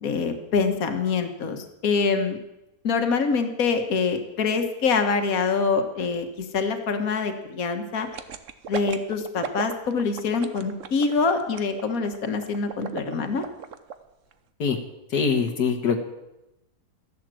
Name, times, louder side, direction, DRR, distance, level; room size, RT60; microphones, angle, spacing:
voice 1, 0.0-2.4 2.8-8.1 8.7-13.4, left 5 dB, 65° left, 6 dB, 1.8 m, -25 dB
sound 1, 8.1-13.9 14.3-14.4, right 8 dB, 55° right, 1.2 m, -35 dB
voice 2, 15.1-16.0, left 6 dB, 80° left, 4 dB, 1.8 m, -23 dB
14.0 x 11.0 x 7.6 m, 0.95 s
omnidirectional pair, 1.7 m